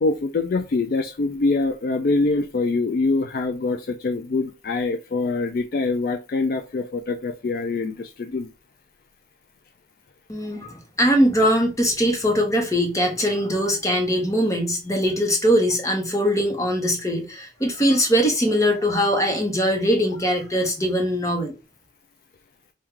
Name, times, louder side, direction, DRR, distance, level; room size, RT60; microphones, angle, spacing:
voice 1, 0.0-8.5, left 3 dB, 50° left, 0.3 m, -24 dB
voice 2, 10.3-21.5, equal, 15° left, 0.8 m, -21 dB
4.5 x 2.3 x 3.6 m
head